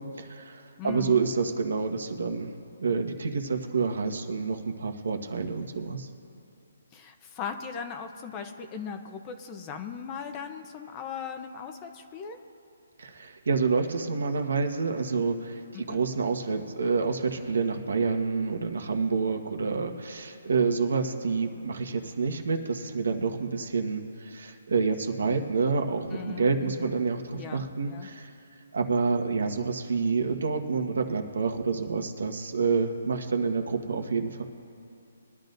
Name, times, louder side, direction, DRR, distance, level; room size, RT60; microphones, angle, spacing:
voice 1, 0.0-2.5 2.8-6.1 13.0-28.3 28.7-34.4, right 4 dB, 75° right, 5 dB, 1.4 m, -28 dB
voice 2, 0.8-1.2 6.9-12.4 15.7-16.0 26.1-26.9 27.3-28.1, left 7 dB, 20° left, 6 dB, 0.7 m, -38 dB
22.5 x 11.0 x 2.6 m, 2.7 s
hypercardioid pair, 165°, 0 cm